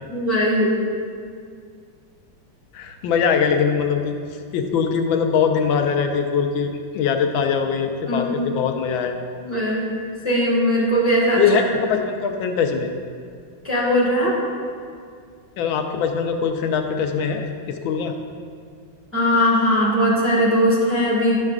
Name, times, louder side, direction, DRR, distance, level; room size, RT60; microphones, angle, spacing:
voice 1, 0.1-0.8 8.1-8.4 9.4-9.9 10.2-11.4 13.6-14.3 19.1-21.4, equal, 10° right, -7 dB, 1.3 m, -19 dB
voice 2, 2.7-4.1 4.5-9.1 11.4-12.9 15.6-18.1, left 6 dB, 85° left, 5 dB, 1.3 m, -22 dB
10.5 x 6.3 x 2.4 m, 2.2 s
omnidirectional pair, 2.1 m